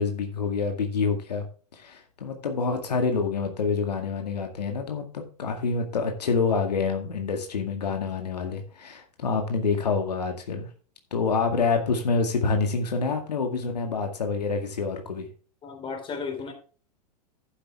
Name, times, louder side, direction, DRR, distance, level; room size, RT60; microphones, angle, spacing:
voice 1, 0.0-1.4 1.7-10.7 11.1-15.3, left 4 dB, 80° left, 4 dB, 2.1 m, -27 dB
voice 2, 15.6-16.5, left 5 dB, 25° left, 5 dB, 3.6 m, -34 dB
11.5 x 8.2 x 3.6 m, 0.38 s
hypercardioid pair, 105°, 21 cm